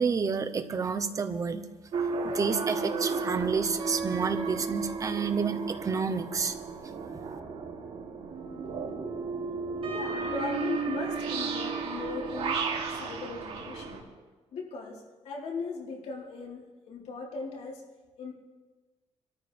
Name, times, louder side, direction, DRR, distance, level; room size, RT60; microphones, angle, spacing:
voice 1, 0.0-1.6 2.2-6.5, right 5 dB, 30° right, 9 dB, 0.9 m, -29 dB
sound 1, 1.9-14.0, right 4 dB, 60° right, 3.0 m, -33 dB
voice 2, 9.8-12.7 13.0-14.0 14.5-17.8 18.2-18.3, left 4 dB, 80° left, -3 dB, 4.1 m, -38 dB
25.5 x 13.5 x 3.5 m, 1.3 s
wide cardioid pair, 175°, 11 cm